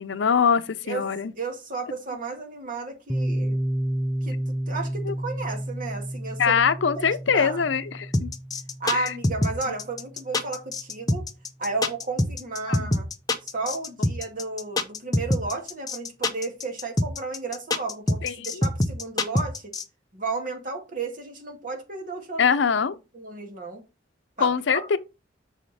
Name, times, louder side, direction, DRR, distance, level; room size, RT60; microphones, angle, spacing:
voice 1, 0.0-1.3 5.0-5.1 6.4-8.3 8.9-9.1 12.7-12.9 18.2-18.6 22.4-23.0 24.4-25.0, left 6 dB, 75° left, 0.6 m, -23 dB
voice 2, 1.4-3.6 4.2-4.4 4.7-6.6 6.9-7.1 7.3-7.6 8.8-11.3 11.6-13.1 13.5-19.7 20.1-22.6 23.1-23.8 24.4-24.9, right 3 dB, 45° right, 2.0 m, -33 dB
Piano, 3.1-10.5, right 1 dB, ahead, 0.4 m, -31 dB
sound 1, 8.1-19.8, left 1 dB, 20° left, 0.8 m, -24 dB
6.3 x 5.0 x 4.1 m
head